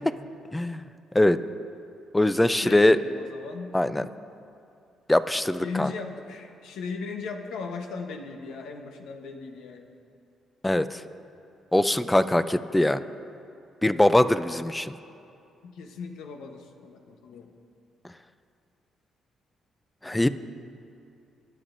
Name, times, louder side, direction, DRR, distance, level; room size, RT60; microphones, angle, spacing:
voice 1, 0.5-0.8 1.1-1.4 2.1-3.0 3.7-4.0 5.1-5.9 10.6-11.0 11.7-13.0 13.8-14.9 20.0-20.3, left 1 dB, 10° left, 12 dB, 0.4 m, -22 dB
voice 2, 2.5-3.7 5.6-9.9 15.6-17.6, left 4 dB, 85° left, 3 dB, 0.9 m, -37 dB
21.0 x 9.9 x 2.6 m, 2.6 s
cardioid pair, 90°, 0 cm